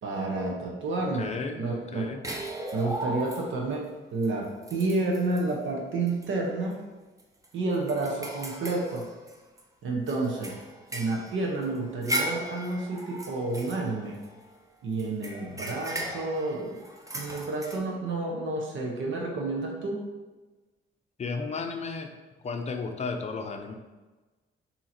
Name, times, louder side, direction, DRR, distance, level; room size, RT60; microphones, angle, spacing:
voice 1, 0.0-1.3 1.6-2.1 2.7-6.8 7.5-9.1 9.8-10.6 10.9-14.2 14.8-16.8 17.1-20.1, right 2 dB, 70° right, -1 dB, 0.9 m, -30 dB
voice 2, 1.0-2.2 21.2-22.1 22.4-23.7, left 4 dB, 35° left, 5 dB, 0.5 m, -34 dB
sound 1, 2.2-3.7 4.2-4.3 4.6-5.5 6.1-6.3 6.6-6.7 7.2-9.6 10.1-14.5 15.0-17.8, right 1 dB, 15° right, 0.6 m, -37 dB
3.8 x 2.8 x 4.3 m, 1.2 s
cardioid pair, 95°, 21 cm